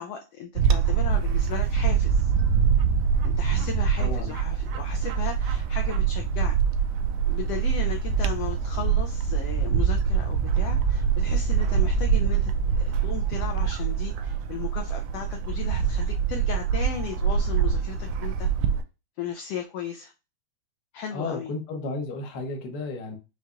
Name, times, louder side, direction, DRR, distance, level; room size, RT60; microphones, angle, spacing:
voice 1, 0.0-2.3 3.2-6.6 7.3-12.5 13.0-18.5 19.2-20.1 20.9-21.5, left 7 dB, 85° left, 1.4 m, -36 dB
Bird / Wind, 0.6-18.8, right 7 dB, 80° right, 1.6 m, -24 dB
voice 2, 4.0-4.4 21.1-23.2, left 3 dB, 70° left, 1.0 m, -33 dB
6.2 x 2.7 x 2.4 m
omnidirectional pair, 3.4 m